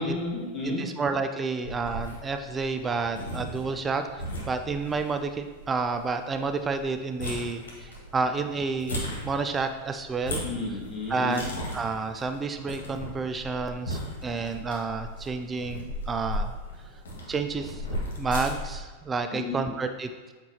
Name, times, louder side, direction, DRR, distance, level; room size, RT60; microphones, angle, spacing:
voice 1, 0.0-0.9 10.4-11.4 19.3-19.6, left 2 dB, 20° left, -5 dB, 1.9 m, -32 dB
voice 2, 0.6-10.4 11.1-11.4 11.7-16.6 17.3-17.8 18.2-20.3, right 4 dB, 20° right, 7 dB, 0.3 m, -30 dB
sound 1, 1.6-18.8, left 1 dB, 65° left, 1.6 m, -37 dB
8.0 x 4.4 x 2.8 m, 1.4 s
figure-of-eight pair, 90°, 0 cm